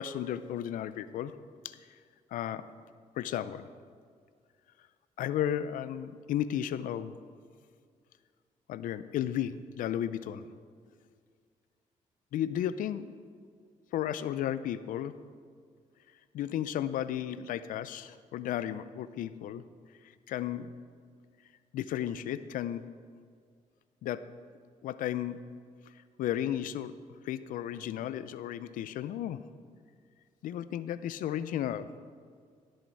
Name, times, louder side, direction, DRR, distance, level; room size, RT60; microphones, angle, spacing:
voice 1, 0.0-1.4 1.6-1.8 2.3-2.7 3.2-3.7 5.2-7.2 8.7-10.5 12.3-13.3 13.9-15.2 16.3-19.6 20.3-20.7 21.7-22.8 24.0-24.2 24.8-25.4 26.2-26.9 27.2-29.4 30.4-31.9, left 11 dB, 80° left, 14 dB, 0.5 m, -34 dB
16.5 x 6.5 x 4.6 m, 2.1 s
cardioid pair, 80°, 14 cm